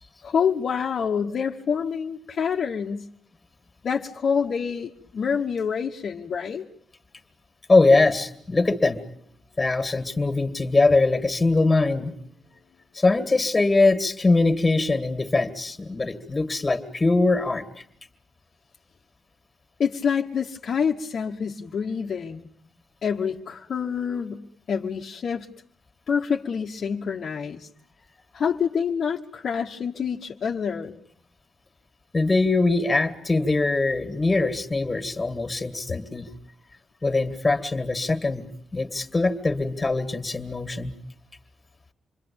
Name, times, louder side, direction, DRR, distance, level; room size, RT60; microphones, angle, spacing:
voice 1, 0.2-3.1 3.8-6.7 19.8-22.5 23.0-25.5 26.1-27.7 28.3-31.0, left 6 dB, 50° left, 1 dB, 1.3 m, -27 dB
voice 2, 7.7-9.0 9.6-12.1 12.9-17.8 32.1-36.3 37.0-38.4 38.7-40.9, left 3 dB, 20° left, 9 dB, 2.4 m, -22 dB
27.5 x 23.5 x 8.8 m, 0.63 s
wide cardioid pair, 145°, 0 cm